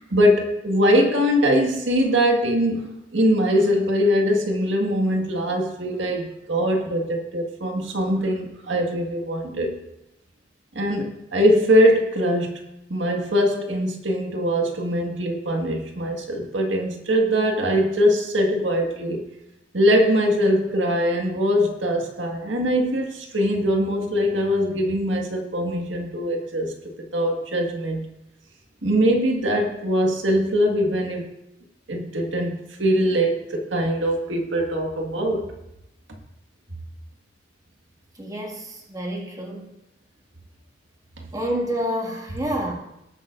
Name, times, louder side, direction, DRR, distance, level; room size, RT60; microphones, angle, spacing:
voice 1, 0.0-9.8 10.8-12.6 12.9-19.2 19.7-26.7 27.1-28.0 28.8-31.3 31.9-35.5, equal, 85° right, 2 dB, 1.8 m, -22 dB
voice 2, 38.2-39.7 41.3-42.7, equal, 20° right, -2 dB, 2.1 m, -28 dB
19.0 x 9.2 x 2.6 m, 0.87 s
head